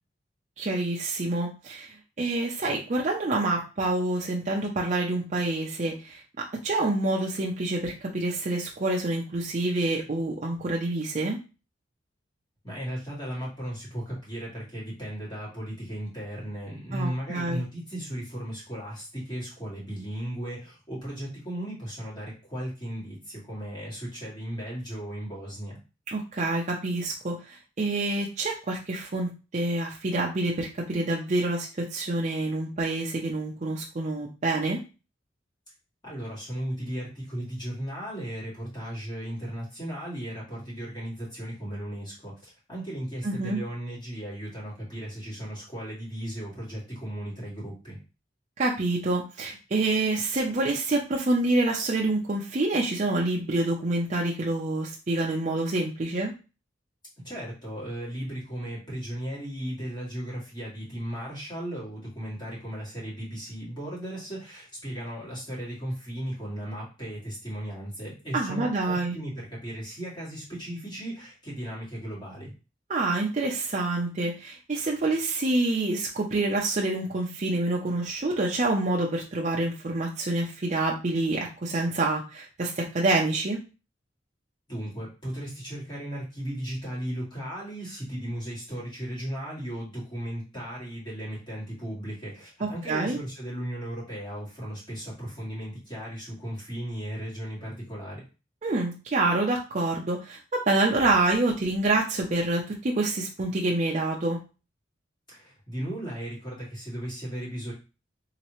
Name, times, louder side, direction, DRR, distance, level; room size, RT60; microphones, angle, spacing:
voice 1, 0.6-6.2 6.6-11.4 16.9-17.6 26.1-34.8 43.2-43.6 48.6-56.3 68.3-69.2 72.9-83.6 92.6-93.2 98.6-104.4, right 2 dB, 40° right, -2 dB, 0.5 m, -27 dB
voice 2, 12.6-25.8 36.0-48.0 57.2-72.5 84.7-98.2 105.3-107.7, right 1 dB, 25° left, -6 dB, 1.9 m, -36 dB
3.2 x 2.9 x 3.0 m, 0.32 s
head